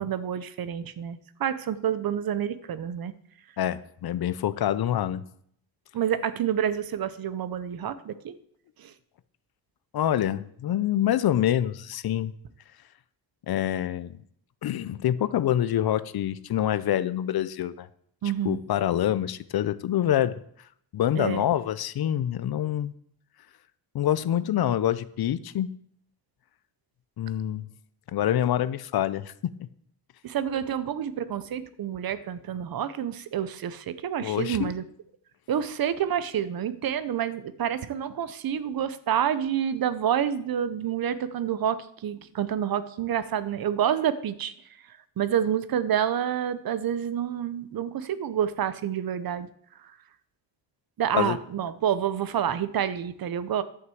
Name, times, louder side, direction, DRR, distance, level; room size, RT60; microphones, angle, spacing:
voice 1, 0.0-3.1 5.9-8.4 8.8-8.9 18.2-18.6 21.1-21.4 30.2-34.8 35.5-49.5 49.7-50.0 51.0-53.6, right 9 dB, 55° right, 15 dB, 0.7 m, -28 dB
voice 2, 3.6-5.2 9.9-12.3 13.5-14.2 14.6-17.9 18.4-20.3 20.9-22.9 23.9-25.7 27.2-27.7 28.1-29.3 34.2-34.7 51.1-51.4, left 11 dB, 60° left, 16 dB, 0.6 m, -26 dB
11.0 x 5.9 x 7.7 m, 0.66 s
wide cardioid pair, 160°, 43 cm